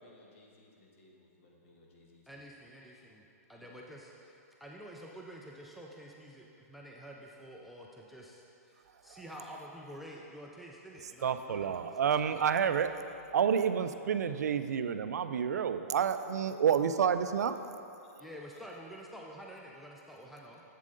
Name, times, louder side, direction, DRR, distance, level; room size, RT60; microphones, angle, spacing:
voice 1, 0.0-2.4 2.8-3.0 3.5-3.7 13.9-14.4 14.7-14.8 18.1-18.6 20.5-20.6, left 2 dB, 50° left, -1 dB, 1.4 m, -62 dB
voice 2, 2.3-12.5 18.2-20.6, equal, ahead, -2 dB, 0.4 m, -49 dB
voice 3, 11.2-12.9 13.3-17.6, right 7 dB, 85° right, 10 dB, 0.4 m, -29 dB
7.5 x 7.3 x 3.8 m, 2.7 s
hypercardioid pair, 155°, 9 cm